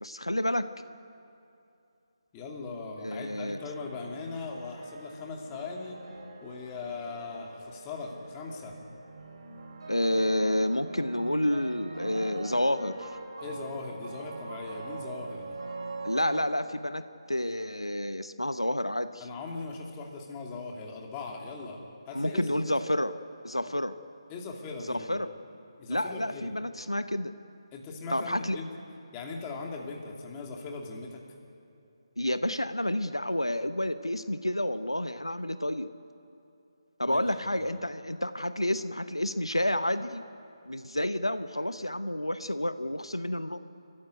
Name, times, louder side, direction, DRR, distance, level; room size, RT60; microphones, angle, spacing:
voice 1, 0.0-0.6 3.0-3.6 9.9-13.2 16.0-17.0 17.3-19.2 22.1-23.1 23.4-23.9 24.9-25.3 25.9-27.3 28.1-28.6 32.2-35.9 37.0-40.2 40.6-43.6, left 1 dB, 90° left, 11 dB, 1.0 m, -29 dB
voice 2, 2.3-6.0 6.4-8.7 13.4-15.6 19.2-21.8 22.1-22.7 24.3-25.2 25.8-26.5 27.7-28.7 29.1-31.2 37.1-37.7, left 4 dB, 15° left, 0 dB, 2.6 m, -39 dB
sound 1, 3.6-16.4, right 3 dB, 55° right, 5.2 m, -43 dB
29.0 x 14.5 x 9.6 m, 2.7 s
figure-of-eight pair, 150°, 3 cm